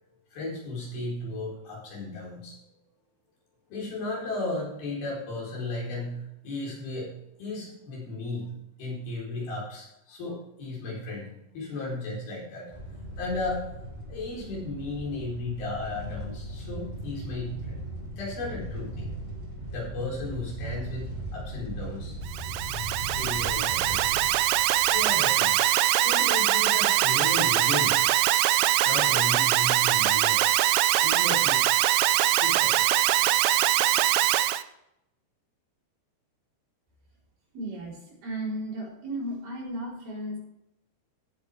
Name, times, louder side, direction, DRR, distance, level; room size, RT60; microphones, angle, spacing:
voice 1, 0.3-2.6 3.7-7.1 7.4-8.5 8.8-12.8 13.2-13.7 14.1-17.8 18.2-19.1 19.7-22.2 23.1-24.1 24.9-25.7 26.0-28.0 28.8-30.6 31.0-31.7 32.4-32.9, left 2 dB, 65° left, -4 dB, 6.0 m, -35 dB
sound 1, 12.7-25.1, right 1 dB, 5° right, 3.9 m, -38 dB
Alarm, 22.3-34.6, right 15 dB, 90° right, 2.0 m, -23 dB
voice 2, 37.5-40.4, right 1 dB, 65° right, -5 dB, 6.4 m, -35 dB
17.0 x 8.0 x 3.6 m, 0.84 s
omnidirectional pair, 4.8 m